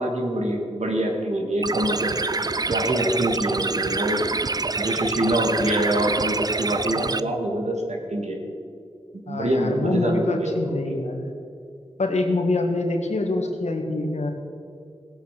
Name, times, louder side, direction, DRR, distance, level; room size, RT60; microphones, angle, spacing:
voice 1, 0.0-2.1 2.7-4.2 4.8-8.4 9.3-11.0, right 1 dB, 80° right, 1 dB, 2.4 m, -25 dB
sound 1, 1.6-7.2, right 3 dB, 35° right, 0.4 m, -26 dB
voice 2, 9.3-11.3 12.0-14.3, left 2 dB, 85° left, 3 dB, 1.7 m, -25 dB
17.5 x 8.0 x 6.8 m, 2.4 s
wide cardioid pair, 50°, 11 cm